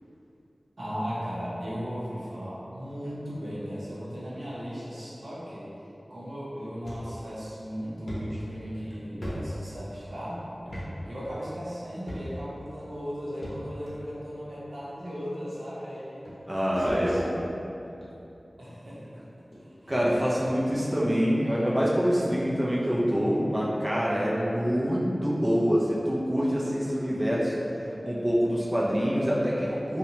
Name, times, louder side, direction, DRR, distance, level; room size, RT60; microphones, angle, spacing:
voice 1, 0.8-5.7 6.1-10.4 11.1-16.3 16.6-17.2 18.6-19.9, equal, 90° right, -9 dB, 0.7 m, -37 dB
sound 1, 6.8-7.0 7.5-7.6 8.1-10.1 10.6-10.9 11.2-11.3 12.0-12.5 13.4-13.9 14.8-14.9 15.9-16.0 16.2-17.4 17.9-18.1 18.9-19.0 19.5-19.6 19.9-20.0 20.4-20.6, equal, 65° left, 0.6 m, -38 dB
voice 2, 16.5-17.3 19.9-27.5 28.0-30.0, equal, 25° right, -6 dB, 0.4 m, -25 dB
2.8 x 2.1 x 2.7 m, 2.8 s
wide cardioid pair, 65°, 0 cm